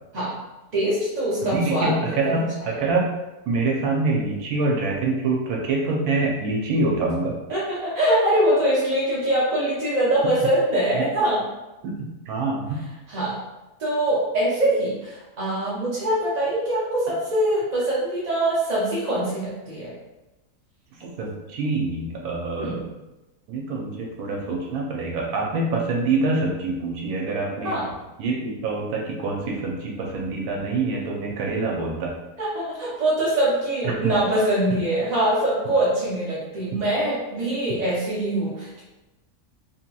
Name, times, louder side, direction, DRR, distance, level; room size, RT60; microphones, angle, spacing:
voice 1, 0.7-2.0 2.3-2.4 7.5-11.4 13.1-13.3 13.8-19.9 22.5-22.8 27.6-27.8 32.4-38.8, right 1 dB, 50° right, -8 dB, 0.5 m, -23 dB
voice 2, 1.4-3.1 3.5-7.3 10.2-10.3 11.8-12.8 20.9-22.8 23.5-27.8 28.2-32.1 33.8-34.1 34.7-34.8, right 3 dB, 85° right, -1 dB, 1.1 m, -25 dB
2.8 x 2.8 x 2.2 m, 1.0 s
omnidirectional pair, 1.5 m